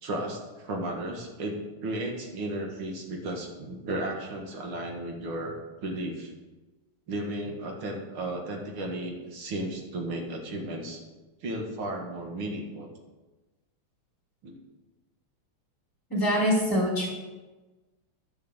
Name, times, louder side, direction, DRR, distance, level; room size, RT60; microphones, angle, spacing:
voice 1, 0.0-5.5 5.8-6.3 7.1-11.0 11.4-12.9 14.4-14.6, right 1 dB, 75° right, 1 dB, 2.8 m, -34 dB
voice 2, 16.1-17.1, equal, 10° left, -7 dB, 3.2 m, -24 dB
11.0 x 7.0 x 8.2 m, 1.2 s
omnidirectional pair, 2.4 m